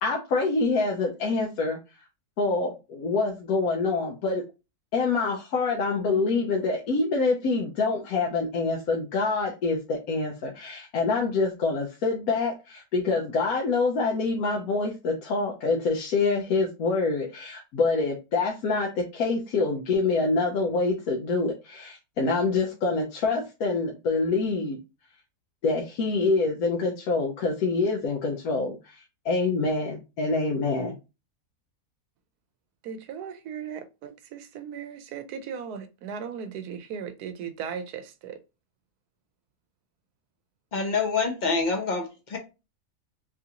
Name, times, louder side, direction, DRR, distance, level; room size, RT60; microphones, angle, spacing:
voice 1, 0.0-1.8 2.4-4.4 4.9-24.8 25.6-29.0 29.2-30.9, left 3 dB, 75° left, 1.1 m, -26 dB
voice 2, 32.8-38.4, right 7 dB, 85° right, 1.1 m, -37 dB
voice 3, 40.7-42.4, left 4 dB, 40° left, 0.7 m, -26 dB
3.6 x 2.5 x 2.8 m
omnidirectional pair, 1.6 m